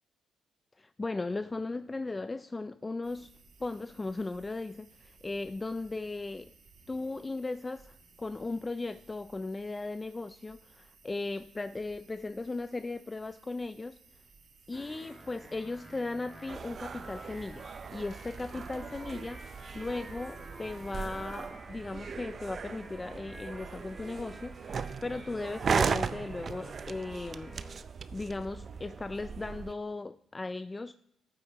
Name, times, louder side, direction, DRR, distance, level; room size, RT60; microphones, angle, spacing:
voice 1, 0.8-3.3 3.6-6.5 6.9-14.0 14.7-27.6 28.1-30.9, left 3 dB, 20° left, 0.3 m, -37 dB
sound 1, 3.0-21.5, right 4 dB, 65° right, 2.2 m, -60 dB
sound 2, 14.7-27.8, right 1 dB, 20° right, 1.9 m, -50 dB
Commercial Building + Leaving to street with construction, 16.5-29.7, right 6 dB, 45° right, 0.4 m, -37 dB
14.0 x 8.6 x 2.9 m
cardioid pair, 90°, 0 cm